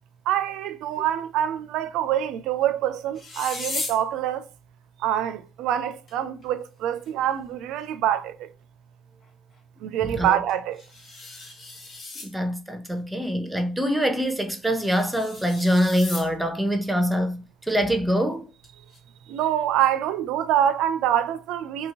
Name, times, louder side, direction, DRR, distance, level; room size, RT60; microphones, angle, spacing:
voice 1, 0.3-4.5 5.0-8.5 9.8-10.8 19.3-21.9, right 11 dB, 75° right, 0.4 m, -25 dB
sound 1, 3.1-4.0 6.1-6.2 6.4-6.5 7.1-7.2 10.5-12.3 14.5-16.3 18.6-19.0, left 3 dB, 50° left, 1.1 m, -36 dB
voice 2, 10.0-10.4 12.2-17.4 17.7-18.5, equal, 5° right, 0.7 m, -24 dB
2.8 x 2.7 x 2.9 m
supercardioid pair, 70°, 0 cm